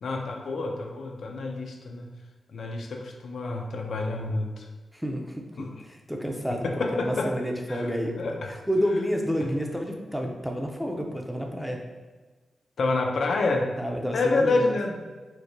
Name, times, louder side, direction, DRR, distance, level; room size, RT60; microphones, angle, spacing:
voice 1, 0.0-2.1 2.5-4.6 5.6-5.7 6.6-7.3 7.7-7.9 8.2-8.5 12.8-13.7 14.1-15.0, left 3 dB, 75° left, 2 dB, 0.4 m, -28 dB
voice 2, 4.9-11.8 13.8-14.7, equal, ahead, 1 dB, 0.5 m, -30 dB
4.4 x 2.2 x 2.7 m, 1.3 s
cardioid pair, 75°, 0 cm